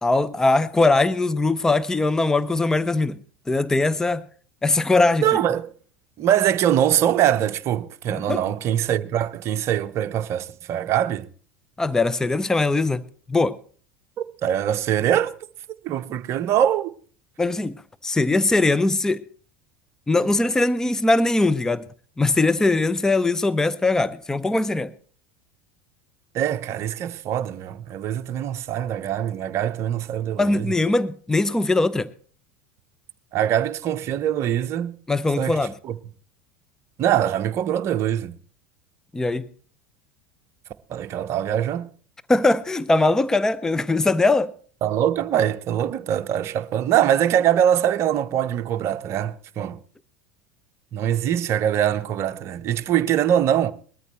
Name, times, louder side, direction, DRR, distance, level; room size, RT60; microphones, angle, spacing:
voice 1, 0.0-3.2 3.5-4.2 4.6-5.2 8.1-8.4 11.8-13.0 13.3-13.6 17.4-17.7 18.0-19.2 20.1-21.8 22.2-24.9 30.4-32.1 35.1-35.7 39.1-39.5 42.3-44.5, left 2 dB, 10° left, 0.5 m, -21 dB
voice 2, 5.2-5.7 6.2-11.3 14.2-15.3 15.8-16.9 26.3-30.7 33.3-35.0 35.4-35.6 35.8-36.0 37.0-38.4 40.9-41.9 44.8-49.8 50.9-53.7, right 10 dB, 40° right, 0.7 m, -23 dB
20.5 x 13.5 x 3.1 m
figure-of-eight pair, 75°, 7 cm